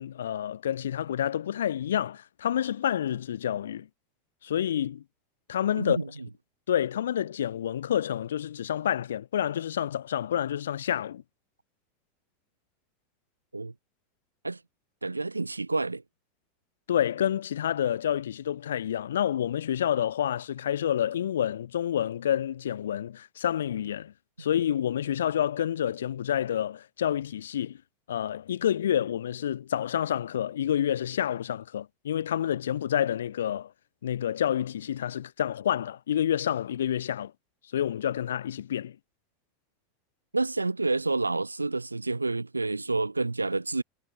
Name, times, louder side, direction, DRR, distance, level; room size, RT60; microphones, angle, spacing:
voice 1, 0.0-3.9 4.4-5.0 5.5-6.0 6.7-11.2 16.9-24.1 24.4-27.8 28.1-33.7 34.0-37.3 37.7-39.0, left 10 dB, 70° left, 4.3 m, -28 dB
voice 2, 5.8-6.1 13.5-13.7 14.4-14.6 15.0-16.0 40.3-43.8, right 3 dB, 90° right, 5.5 m, -29 dB
figure-of-eight pair, 80°, 0 cm